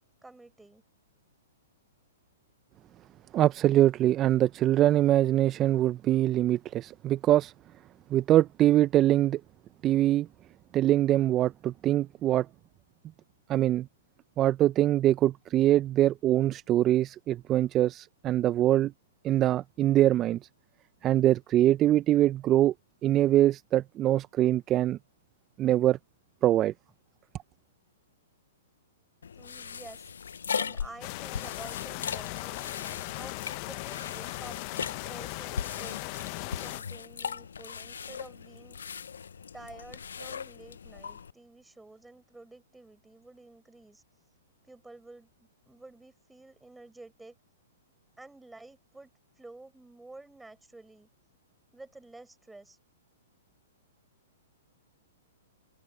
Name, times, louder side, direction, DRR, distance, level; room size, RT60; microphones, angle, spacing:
voice 1, 0.2-0.8 29.4-30.1 30.5-32.7 33.1-34.6 35.0-38.8 39.5-44.0 44.6-47.3 48.2-49.1 49.4-51.1 51.7-52.8, right 2 dB, 5° right, 5.3 m, -50 dB
voice 2, 3.3-7.5 8.1-9.4 9.8-10.3 10.7-12.5 13.5-13.9 14.4-18.9 19.2-20.4 21.0-22.7 23.0-25.0 25.6-26.0 26.4-26.7, right 13 dB, 25° right, 0.8 m, -23 dB
sound 1, 29.2-41.3, left 7 dB, 75° left, 0.7 m, -39 dB
sound 2, 31.0-36.8, left 27 dB, 45° left, 0.9 m, -38 dB
hypercardioid pair, 120°, 0 cm